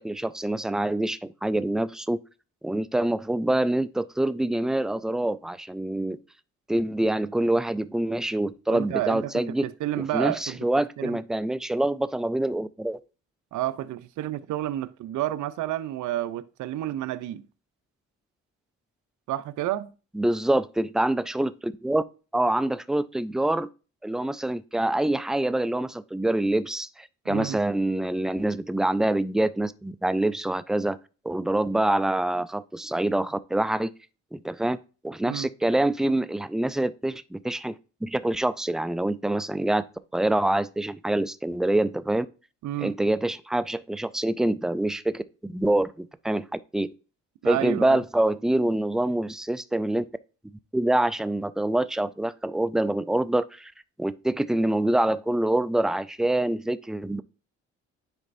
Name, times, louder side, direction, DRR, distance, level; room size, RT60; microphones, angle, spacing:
voice 1, 0.0-2.2 2.6-6.2 6.7-9.7 10.0-13.0 20.1-22.0 22.3-23.7 24.0-31.0 31.2-33.9 34.3-34.8 35.0-39.8 40.1-42.3 42.8-46.9 47.5-50.0 50.7-53.7 54.0-57.2, right 1 dB, ahead, 0.3 m, -26 dB
voice 2, 8.7-10.7 11.0-11.2 13.5-17.5 19.3-19.9 27.3-27.6 35.2-35.5 42.6-42.9 47.4-48.0, right 13 dB, 80° right, 0.6 m, -30 dB
9.9 x 4.0 x 2.6 m
cardioid pair, 90°, 30 cm